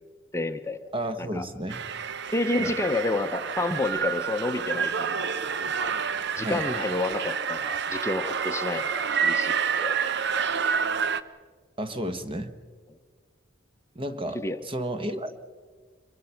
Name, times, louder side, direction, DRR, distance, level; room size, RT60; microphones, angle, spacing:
voice 1, 0.3-0.8 1.2-1.4 2.3-5.3 5.8-5.9 6.4-10.0 10.3-10.5 14.3-14.6, left 2 dB, 15° left, 7 dB, 0.8 m, -30 dB
voice 2, 0.9-1.8 2.6-2.8 6.4-6.7 11.8-12.5 13.9-15.3, right 1 dB, 25° right, 9 dB, 1.3 m, -32 dB
sound 1, 1.7-11.2, right 6 dB, 60° right, 0.8 m, -28 dB
25.0 x 22.5 x 5.8 m, 1.5 s
head